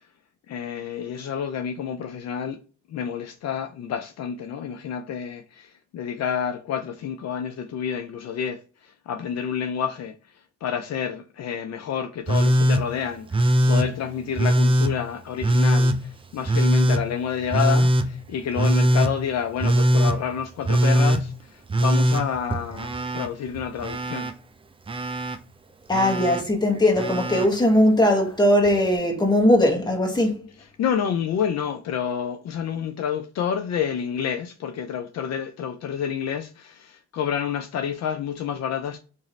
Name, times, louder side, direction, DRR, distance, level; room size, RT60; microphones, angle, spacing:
voice 1, 0.5-2.6 2.9-10.1 10.6-24.3 30.8-39.0, left 8 dB, 60° left, 0.5 m, -29 dB
Telephone, 12.3-12.8 13.3-13.9 14.4-14.9 15.4-16.0 16.5-17.0 17.5-18.1 18.6-19.1 19.6-20.2 20.6-21.2 21.7-23.3 23.5-24.3 24.9-25.4 25.9-26.4 27.0-27.5 28.7-28.8, right 1 dB, 20° right, 0.4 m, -20 dB
voice 2, 25.9-30.4, left 1 dB, 15° left, 1.2 m, -19 dB
3.0 x 2.7 x 3.9 m
cardioid pair, 90°, 30 cm